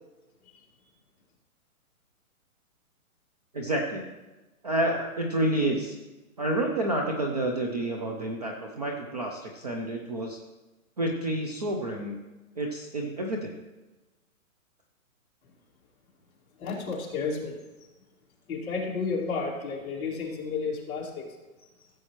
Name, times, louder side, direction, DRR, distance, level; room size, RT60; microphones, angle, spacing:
voice 1, 3.5-4.1 4.6-6.0 6.4-10.4 11.0-12.2 12.6-13.6, right 1 dB, 30° right, 2 dB, 0.5 m, -29 dB
voice 2, 16.6-17.6 18.5-21.3, left 4 dB, 20° left, -5 dB, 1.9 m, -31 dB
15.5 x 7.6 x 3.0 m, 1.1 s
hypercardioid pair, 170°, 43 cm